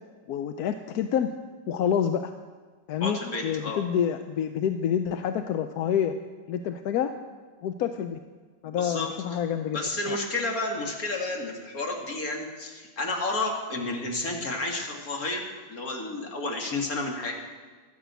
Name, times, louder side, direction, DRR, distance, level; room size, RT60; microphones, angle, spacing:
voice 1, 0.3-1.3 1.7-2.3 2.9-6.2 6.5-7.1 7.6-8.2 8.6-9.8 10.1-10.2, left 8 dB, 70° left, 8 dB, 1.1 m, -27 dB
voice 2, 3.0-3.8 8.6-9.1 9.7-15.4 15.7-17.3, left 2 dB, 55° left, 1 dB, 2.5 m, -31 dB
12.5 x 10.0 x 8.2 m, 1.4 s
omnidirectional pair, 1.9 m